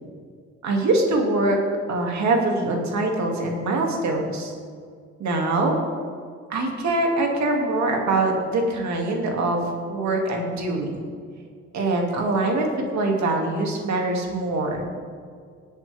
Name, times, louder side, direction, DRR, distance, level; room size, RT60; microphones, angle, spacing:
voice 1, 0.6-1.6 1.9-4.5 5.2-5.8 6.5-11.0 11.7-14.9, right 2 dB, 65° right, 1 dB, 2.4 m, -23 dB
19.0 x 8.2 x 3.5 m, 2.1 s
cardioid pair, 90°, 30 cm